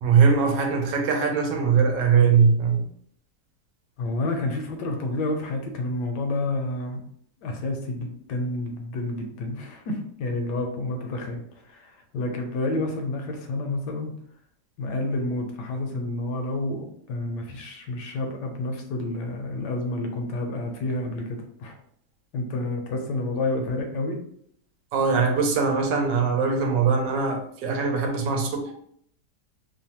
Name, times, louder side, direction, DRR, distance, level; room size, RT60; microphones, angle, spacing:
voice 1, 0.0-2.8 24.9-28.7, right 5 dB, 90° right, 1.3 m, -21 dB
voice 2, 4.0-7.0 7.4-14.1 14.8-21.8 22.3-24.2, left 2 dB, 75° left, 1.1 m, -29 dB
3.1 x 2.2 x 2.7 m
omnidirectional pair, 1.9 m